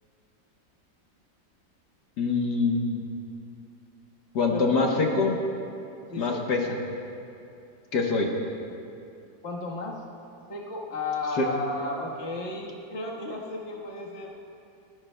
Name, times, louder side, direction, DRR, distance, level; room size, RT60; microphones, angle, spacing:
voice 1, 2.2-3.0 4.4-5.4 6.2-6.6 7.9-8.3 11.4-11.5, left 3 dB, 65° left, 0 dB, 1.7 m, -24 dB
voice 2, 6.1-6.4 9.4-10.0 10.5-14.3, left 2 dB, 40° left, -2 dB, 1.6 m, -33 dB
30.0 x 11.5 x 2.2 m, 2.7 s
omnidirectional pair, 2.0 m